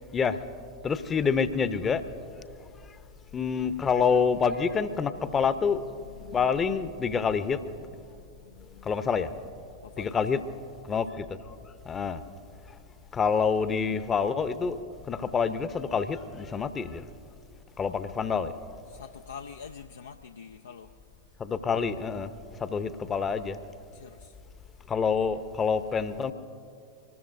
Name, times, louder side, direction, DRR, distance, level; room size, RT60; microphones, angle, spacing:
voice 1, 0.8-2.4 3.3-5.8 6.3-7.6 8.8-9.3 10.0-10.4 10.8-11.6 11.9-12.2 12.7-12.8 13.1-14.8 15.0-17.0 17.8-18.5 21.4-22.3 22.6-23.6 24.9-26.3, left 6 dB, 20° left, 13 dB, 0.8 m, -27 dB
voice 2, 5.2-7.3 7.7-8.9 9.5-10.2 18.9-20.9 23.9-24.4, left 6 dB, 70° left, 5 dB, 0.5 m, -47 dB
25.0 x 19.5 x 2.7 m, 2.4 s
figure-of-eight pair, 90°, 0 cm